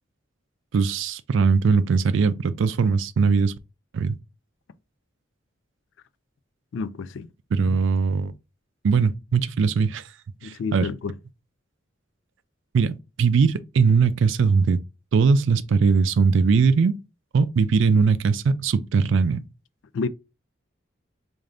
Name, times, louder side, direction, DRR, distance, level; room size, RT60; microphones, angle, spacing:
voice 1, 0.7-3.5 3.9-4.2 7.5-8.3 8.8-10.0 10.4-10.9 12.7-14.8 15.1-17.0 17.3-19.4, right 5 dB, 75° right, 0.4 m, -20 dB
voice 2, 6.7-7.3 7.7-7.8 10.4-11.2 19.9-20.1, left 4 dB, 70° left, 0.3 m, -29 dB
3.7 x 2.5 x 3.3 m
head